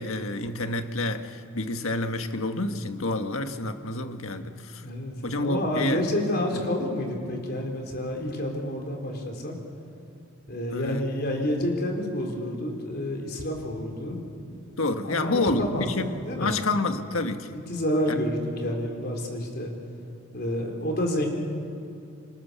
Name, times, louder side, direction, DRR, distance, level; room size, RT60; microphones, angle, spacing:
voice 1, 0.0-4.8 5.2-6.0 6.5-6.6 10.7-11.0 14.8-16.1 16.4-17.6 18.1-18.2, left 2 dB, 75° left, 7 dB, 1.6 m, -28 dB
voice 2, 4.8-9.5 10.5-14.2 15.0-16.6 17.5-19.7 20.3-21.3, left 1 dB, 45° left, 1 dB, 4.2 m, -29 dB
27.5 x 26.5 x 7.1 m, 2.5 s
head